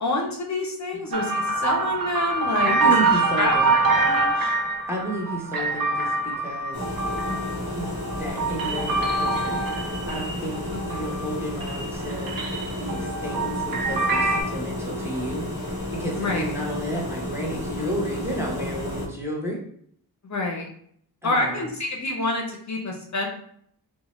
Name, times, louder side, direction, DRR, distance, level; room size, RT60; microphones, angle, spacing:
voice 1, 0.0-2.9 3.4-3.5 3.9-4.5 5.6-5.7 7.3-7.6 10.7-11.0 16.1-16.5 20.2-20.7 21.2-23.3, left 2 dB, 45° left, 0 dB, 0.6 m, -28 dB
sound 1, 1.1-11.3 11.6-14.4, right 3 dB, 60° right, 0.6 m, -25 dB
voice 2, 2.6-3.7 4.9-6.8 7.7-9.6 10.1-12.3 12.8-15.5 15.9-19.6 21.2-21.5, right 1 dB, 5° right, -2 dB, 0.8 m, -32 dB
sound 2, 6.7-19.1, left 1 dB, 40° right, 1.1 m, -32 dB
2.7 x 2.1 x 3.0 m, 0.65 s
cardioid pair, 65°, 40 cm